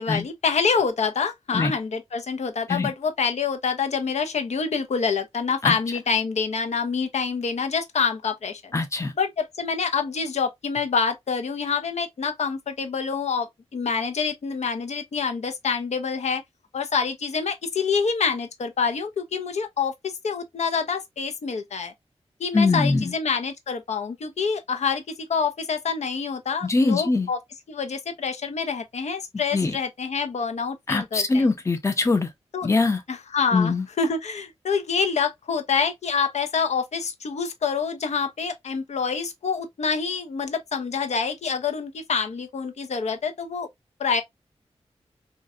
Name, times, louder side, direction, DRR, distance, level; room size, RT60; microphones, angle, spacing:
voice 1, 0.0-8.7 9.2-16.4 16.7-21.9 22.4-25.0 25.3-27.4 27.7-31.4 32.5-32.7 33.1-43.7 44.0-44.2, left 5 dB, 80° left, 0.5 m, -26 dB
voice 2, 8.7-9.1 22.5-23.1 26.6-27.3 29.5-29.8 30.9-32.3 32.6-33.0 33.5-33.9, left 3 dB, 25° left, 0.6 m, -22 dB
3.8 x 2.1 x 2.4 m
wide cardioid pair, 90°, 11 cm